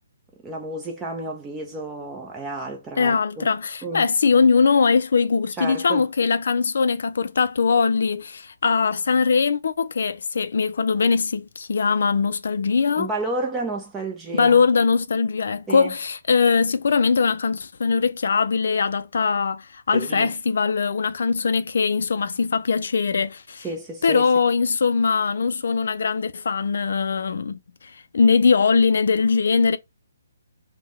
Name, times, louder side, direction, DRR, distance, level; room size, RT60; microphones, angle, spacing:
voice 1, 0.4-3.5 3.8-4.1 5.6-6.1 13.0-14.6 15.7-15.9 19.9-20.3 23.6-24.3, right 2 dB, 10° right, 0.6 m, -31 dB
voice 2, 3.0-13.1 14.4-23.7 24.0-29.8, left 5 dB, 70° left, 0.4 m, -21 dB
3.5 x 2.2 x 3.0 m
hypercardioid pair, 160°, 0 cm